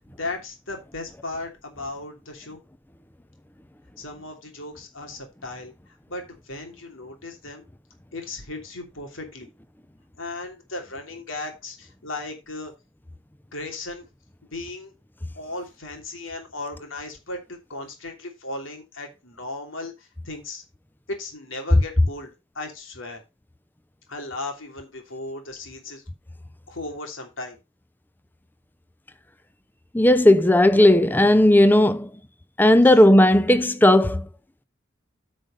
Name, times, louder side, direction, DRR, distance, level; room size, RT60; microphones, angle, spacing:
voice 1, 0.2-2.6 4.0-7.6 8.1-9.5 10.2-12.7 13.5-14.1 14.5-14.9 15.3-20.6 21.1-23.2 24.1-26.0 26.7-27.6 32.8-32.9, left 2 dB, 80° left, 2.9 m, -36 dB
voice 2, 29.9-32.1 32.6-34.3, left 1 dB, 10° left, 0.5 m, -15 dB
9.5 x 5.1 x 5.2 m
head